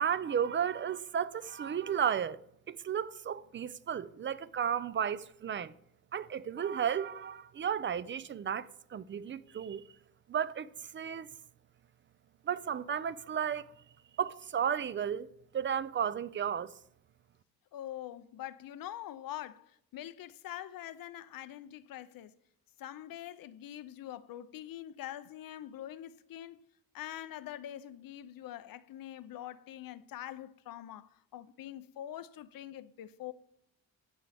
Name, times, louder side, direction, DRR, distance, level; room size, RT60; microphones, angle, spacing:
voice 1, 0.0-2.4 2.7-5.7 6.1-9.8 10.3-11.3 12.5-13.6 14.2-15.3 15.5-16.7, right 8 dB, 30° right, 0.4 m, -33 dB
voice 2, 17.7-22.3 22.8-26.6 26.9-33.3, left 12 dB, 65° left, 0.6 m, -44 dB
14.0 x 8.4 x 3.4 m
cardioid pair, 105°, 37 cm